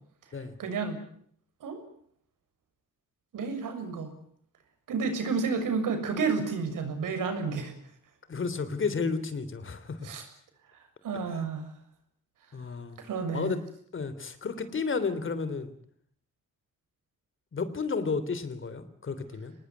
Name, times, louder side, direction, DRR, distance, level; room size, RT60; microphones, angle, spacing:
voice 1, 0.6-1.0 1.6-1.8 3.3-4.1 4.9-7.7 10.0-10.3 11.0-11.7 13.0-13.5, right 5 dB, 80° right, 7 dB, 7.0 m, -30 dB
voice 2, 8.3-10.1 11.3-11.4 12.5-13.0 13.3-13.6 13.9-15.7 17.5-19.5, left 4 dB, 40° left, 13 dB, 3.3 m, -32 dB
26.5 x 19.5 x 9.4 m, 0.62 s
cardioid pair, 135°, 31 cm